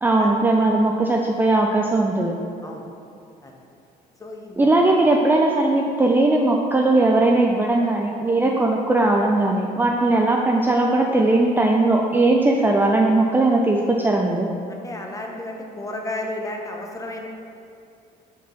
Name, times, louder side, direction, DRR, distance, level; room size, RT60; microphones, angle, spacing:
voice 1, 0.0-2.3 4.6-14.5, right 2 dB, 10° right, 0 dB, 0.4 m, -19 dB
voice 2, 4.2-4.7 14.7-17.3, left 1 dB, 20° left, 1 dB, 0.8 m, -33 dB
5.1 x 4.5 x 5.1 m, 2.5 s
cardioid pair, 110°, 17 cm